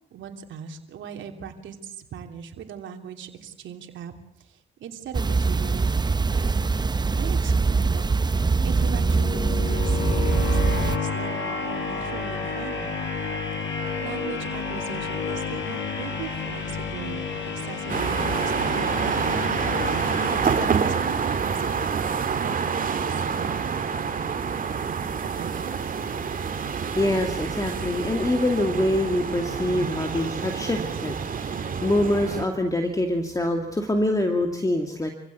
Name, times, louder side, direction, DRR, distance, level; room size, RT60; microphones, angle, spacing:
voice 1, 0.1-4.1 4.4-5.9 6.3-6.7 7.2-12.9 13.8-17.3 17.5-19.4 20.8-25.8, right 8 dB, 75° right, 4 dB, 3.1 m, -40 dB
sound 1, 5.1-11.0, right 4 dB, 20° right, 0.8 m, -23 dB
sound 2, 8.5-21.5, left 5 dB, 70° left, 5.4 m, -31 dB
sound 3, 17.9-32.5, right 6 dB, 45° right, 2.3 m, -27 dB
voice 2, 27.0-35.1, left 1 dB, 15° left, 4 dB, 2.4 m, -25 dB
26.5 x 16.0 x 8.5 m, 0.83 s
cardioid pair, 90°, 20 cm